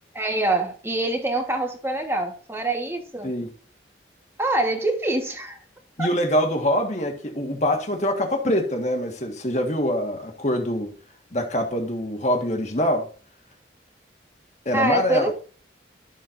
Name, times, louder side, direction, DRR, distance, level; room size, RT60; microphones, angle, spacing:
voice 1, 0.1-3.3 4.4-5.6 6.0-6.1 14.7-15.3, right 2 dB, 15° right, 1.4 m, -25 dB
voice 2, 6.0-10.9 11.3-13.1 14.6-15.3, left 1 dB, 40° left, 1.6 m, -24 dB
12.0 x 7.3 x 2.6 m
head